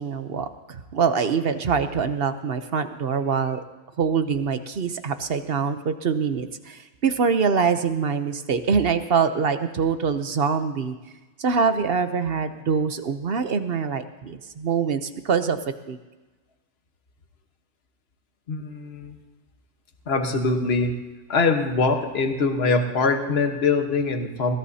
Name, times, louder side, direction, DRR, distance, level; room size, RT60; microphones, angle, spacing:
voice 1, 0.0-3.6 4.0-11.0 11.4-15.6 15.9-16.0, right 6 dB, 50° right, 9 dB, 0.8 m, -24 dB
voice 2, 18.5-19.2 20.1-21.0 21.3-24.6, left 3 dB, 45° left, 5 dB, 1.4 m, -23 dB
21.5 x 17.0 x 2.8 m, 1.2 s
omnidirectional pair, 1.6 m